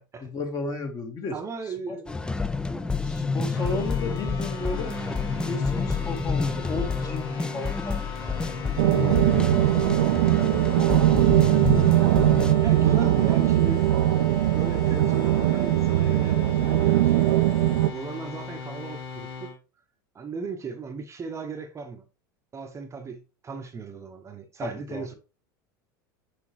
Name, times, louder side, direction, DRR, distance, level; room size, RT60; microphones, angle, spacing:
voice 1, 0.2-1.4 1.7-2.0 3.0-4.9 5.4-8.0 9.8-10.0 10.4-10.9 24.6-25.1, left 3 dB, 35° left, 1.6 m, -34 dB
voice 2, 1.3-2.1 9.4-9.8 11.4-13.9 14.5-17.6 17.9-19.5 20.1-22.1 22.5-25.1, right 4 dB, 25° right, 0.8 m, -37 dB
sound 1, 2.1-12.5, left 4 dB, 5° left, 0.4 m, -29 dB
sound 2, 3.5-19.6, left 5 dB, 80° left, 1.8 m, -38 dB
sound 3, 8.8-17.9, right 14 dB, 75° right, 0.4 m, -21 dB
6.0 x 5.0 x 3.1 m
hypercardioid pair, 90°, 12 cm